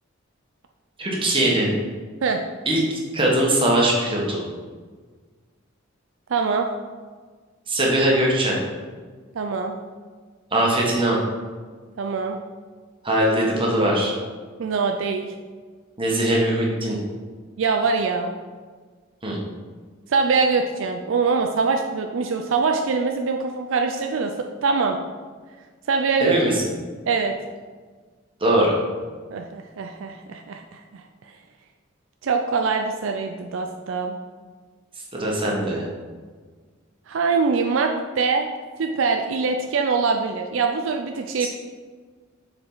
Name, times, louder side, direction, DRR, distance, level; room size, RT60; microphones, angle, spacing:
voice 1, 1.0-1.7 2.6-4.4 7.7-8.6 10.5-11.2 13.0-14.1 16.0-17.0 19.2-19.4 26.2-26.6 28.4-28.8 35.2-35.8 41.4-41.5, right 1 dB, 25° right, -3 dB, 1.4 m, -21 dB
voice 2, 6.3-6.7 9.3-9.8 12.0-12.4 14.6-15.3 17.6-18.3 20.1-25.0 25.9-26.4 27.1-27.3 29.3-31.0 32.2-34.1 37.1-38.5 38.8-41.5, right 4 dB, 65° right, 4 dB, 0.4 m, -23 dB
7.2 x 4.9 x 3.9 m, 1.5 s
head